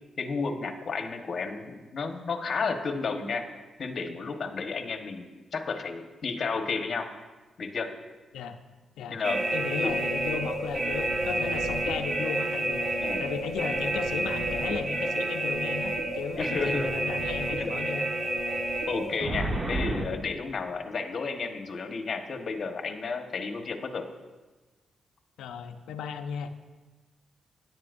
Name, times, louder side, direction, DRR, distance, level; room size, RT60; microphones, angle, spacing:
voice 1, 0.2-3.4 3.8-7.1 7.6-7.9 9.1-9.4 9.8-9.9 13.0-13.3 16.3-16.9 17.6-17.7 18.9-24.1, left 4 dB, 55° left, 5 dB, 1.3 m, -32 dB
sound 1, 9.2-20.0, right 1 dB, 35° right, 1.5 m, -29 dB
voice 2, 9.5-12.9 13.2-18.1 25.4-26.5, left 7 dB, 90° left, 7 dB, 0.7 m, -35 dB
17.0 x 11.0 x 2.6 m, 1.2 s
cardioid pair, 70°, 0 cm